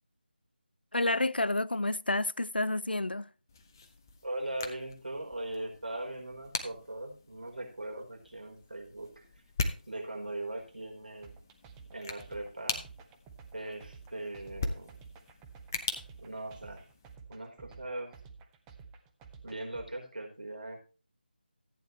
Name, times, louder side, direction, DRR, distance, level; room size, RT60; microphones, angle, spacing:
voice 1, 0.9-3.3, left 2 dB, 70° left, 0.6 m, -29 dB
sound 1, 3.5-17.2, left 4 dB, 20° left, 0.8 m, -42 dB
voice 2, 4.2-9.2 9.9-11.4 11.9-12.8 13.5-15.0 16.2-16.9 17.3-18.2 19.4-20.8, right 1 dB, 60° right, 4.3 m, -40 dB
sound 2, 11.2-19.9, right 5 dB, 5° right, 0.5 m, -52 dB
14.5 x 9.0 x 3.2 m
figure-of-eight pair, 160°, 6 cm